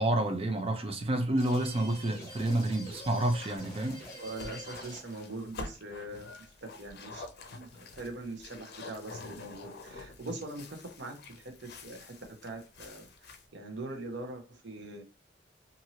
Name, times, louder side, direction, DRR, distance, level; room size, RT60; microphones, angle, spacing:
voice 1, 0.0-4.0, right 1 dB, 35° right, 0.6 m, -29 dB
sound 1, 1.4-5.3, equal, 15° left, 1.1 m, -47 dB
sound 2, 2.8-13.5, left 3 dB, 60° left, 0.5 m, -48 dB
voice 2, 4.1-6.3 6.6-12.1 12.4-15.0, right 2 dB, 75° right, 0.8 m, -42 dB
2.7 x 2.6 x 2.9 m
head